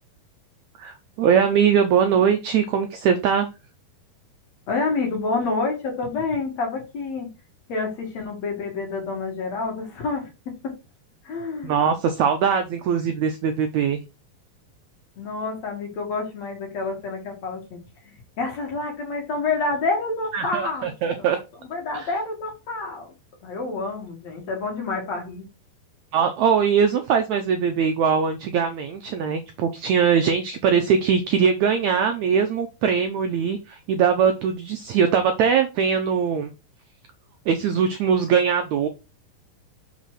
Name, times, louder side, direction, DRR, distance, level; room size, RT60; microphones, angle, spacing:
voice 1, 0.8-3.5 11.6-14.0 20.3-21.4 21.9-22.1 26.1-36.5 37.5-38.9, right 7 dB, 85° right, 7 dB, 1.6 m, -21 dB
voice 2, 4.7-7.3 7.7-10.7 11.2-11.7 15.2-17.8 18.0-20.9 21.2-21.3 21.7-23.1 23.4-25.5, left 3 dB, 50° left, 2 dB, 2.8 m, -28 dB
6.0 x 4.2 x 6.3 m, 0.28 s
omnidirectional pair, 4.2 m